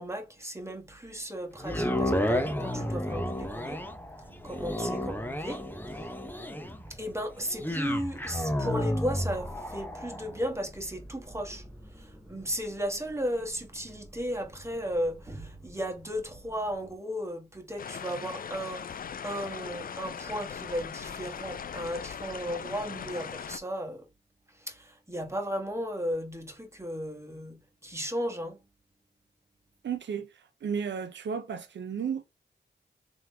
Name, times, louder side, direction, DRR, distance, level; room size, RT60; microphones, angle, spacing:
voice 1, 0.0-3.8 4.4-5.6 5.9-6.1 6.9-24.1 24.5-27.6 27.8-28.6, equal, 15° right, 1.4 m, -35 dB
sound 1, 1.6-15.8 16.3-16.4, left 1 dB, 10° left, 0.8 m, -33 dB
sound 2, 17.8-23.6, left 7 dB, 50° left, 0.4 m, -39 dB
voice 2, 29.8-32.2, right 7 dB, 75° right, 0.5 m, -33 dB
3.8 x 3.0 x 3.4 m
cardioid pair, 60°, 19 cm